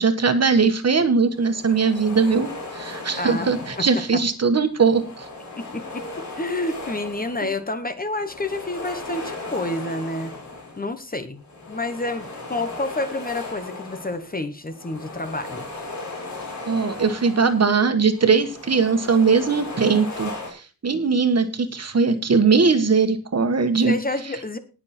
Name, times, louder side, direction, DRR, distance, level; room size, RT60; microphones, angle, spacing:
voice 1, 0.0-5.2 16.7-23.9, right 5 dB, 45° right, 9 dB, 1.5 m, -20 dB
sound 1, 0.6-0.8 1.3-4.3 4.7-7.7 8.0-11.0 11.4-17.8 18.1-20.5, left 2 dB, 50° left, 5.1 m, -37 dB
voice 2, 3.2-3.5 3.8-3.9 5.6-10.3 10.8-11.4 11.7-15.6 23.9-24.6, left 2 dB, 25° left, 10 dB, 1.1 m, -29 dB
19.0 x 6.8 x 4.3 m, 0.35 s
wide cardioid pair, 165°, 35 cm